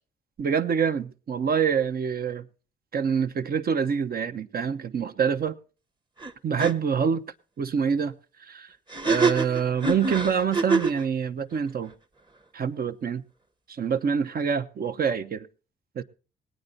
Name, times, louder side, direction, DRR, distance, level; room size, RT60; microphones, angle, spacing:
voice 1, 0.4-2.5 2.9-5.6 6.4-7.2 7.6-8.1 8.4-8.8 9.0-11.9 12.5-13.2 13.7-15.5 15.9-16.0, right 7 dB, 50° right, 0.9 m, -26 dB
sound 1, 6.2-6.3 6.6-6.7 8.9-11.0, right 3 dB, 25° right, 1.1 m, -25 dB
19.5 x 9.0 x 4.0 m
cardioid pair, 90°, 20 cm